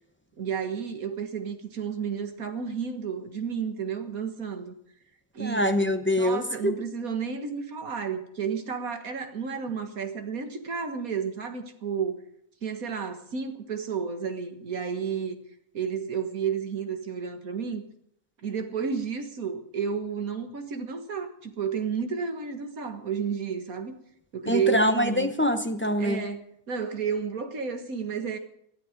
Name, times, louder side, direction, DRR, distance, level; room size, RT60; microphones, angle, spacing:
voice 1, 0.4-4.7 5.3-5.7 6.2-12.3 12.6-15.4 15.7-17.8 18.4-24.0 24.3-25.3 26.0-28.4, right 6 dB, 65° right, 2.0 m, -31 dB
voice 2, 5.4-6.7 24.5-26.2, left 1 dB, 10° left, 0.6 m, -24 dB
19.0 x 12.5 x 5.2 m
omnidirectional pair, 1.7 m